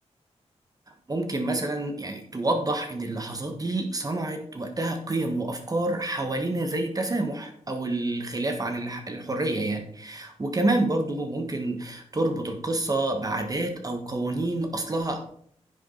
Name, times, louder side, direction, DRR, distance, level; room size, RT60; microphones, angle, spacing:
voice 1, 1.1-15.3, right 2 dB, 30° right, 5 dB, 1.5 m, -28 dB
10.0 x 7.3 x 4.0 m, 0.63 s
wide cardioid pair, 90°, 12 cm